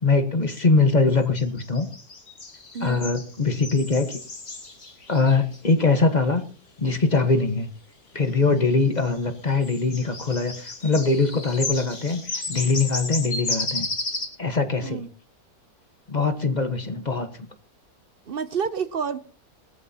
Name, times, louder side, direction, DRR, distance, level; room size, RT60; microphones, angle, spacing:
voice 1, 0.0-1.9 2.8-4.2 5.1-6.4 6.8-7.7 8.1-13.9 14.4-15.0 16.1-17.5, left 3 dB, 30° left, 1.3 m, -22 dB
sound 1, 1.4-5.6 9.0-9.1 9.5-14.3, left 3 dB, 50° left, 2.8 m, -33 dB
voice 2, 2.7-3.1 14.8-15.1 18.3-19.2, right 6 dB, 50° right, 0.7 m, -29 dB
20.5 x 14.0 x 2.8 m
omnidirectional pair, 1.6 m